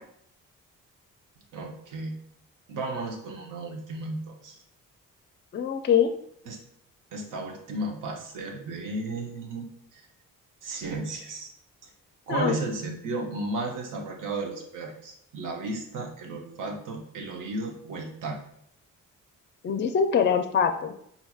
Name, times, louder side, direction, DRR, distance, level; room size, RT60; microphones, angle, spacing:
voice 1, 1.5-2.2 2.7-4.6 6.5-6.6 7.1-9.7 9.9-10.0 10.6-11.5 12.3-18.4, right 2 dB, 75° right, 2 dB, 0.8 m, -34 dB
voice 2, 5.5-6.1 12.3-12.6 19.6-20.9, left 7 dB, 35° left, 7 dB, 0.4 m, -23 dB
4.3 x 2.7 x 2.3 m, 0.70 s
supercardioid pair, 65°, 32 cm